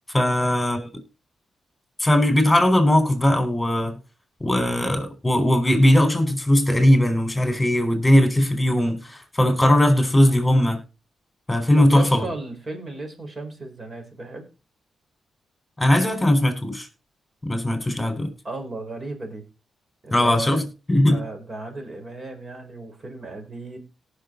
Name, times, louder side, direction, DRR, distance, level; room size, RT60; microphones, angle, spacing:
voice 1, 0.1-0.8 2.0-4.0 4.4-10.8 11.5-12.2 15.8-16.9 17.4-18.3 20.1-21.2, left 1 dB, 10° left, 4.6 m, -19 dB
voice 2, 11.8-14.5 18.4-19.4 20.0-20.6 21.1-23.8, right 2 dB, 40° right, 4.9 m, -35 dB
18.0 x 6.5 x 4.0 m
cardioid pair, 80°, 0 cm